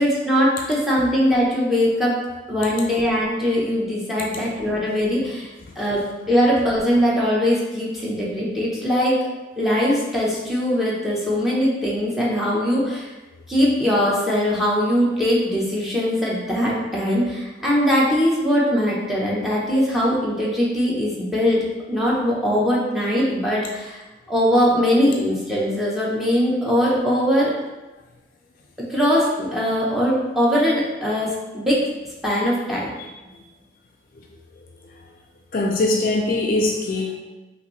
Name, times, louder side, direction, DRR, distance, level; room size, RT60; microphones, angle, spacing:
voice 1, 0.0-2.2 2.5-9.2 9.6-13.1 13.5-24.0 24.3-27.5 28.9-31.8 32.2-32.9, equal, ahead, -6 dB, 0.8 m, -21 dB
voice 2, 35.5-37.2, left 2 dB, 50° left, 1 dB, 0.4 m, -22 dB
5.7 x 2.6 x 3.1 m, 1.1 s
head